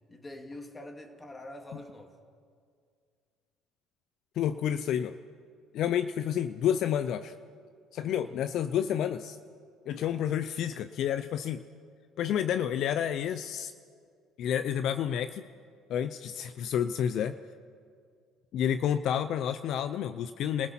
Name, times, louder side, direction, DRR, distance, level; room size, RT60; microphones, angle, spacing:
voice 1, 0.1-2.2 8.0-8.4, left 1 dB, 20° left, 5 dB, 2.5 m, -45 dB
voice 2, 4.4-5.1 5.7-7.3 7.9-9.4 9.9-11.6 12.2-13.7 14.4-15.4 15.9-17.4 18.5-20.7, left 9 dB, 65° left, 11 dB, 0.6 m, -30 dB
28.0 x 16.0 x 5.9 m, 2.1 s
supercardioid pair, 80°, 0 cm